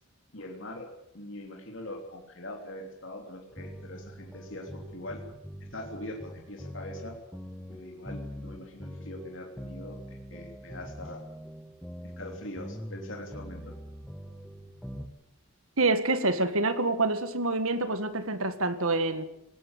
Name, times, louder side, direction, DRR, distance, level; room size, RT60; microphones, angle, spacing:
voice 1, 0.3-0.9 1.1-5.2 5.7-7.2 7.7-11.2 12.2-13.8, left 1 dB, 60° left, 1 dB, 3.3 m, -42 dB
sound 1, 3.5-15.1, equal, 5° left, 1.3 m, -43 dB
voice 2, 15.8-19.2, right 2 dB, 80° right, 10 dB, 2.0 m, -27 dB
19.5 x 19.0 x 8.2 m, 0.82 s
head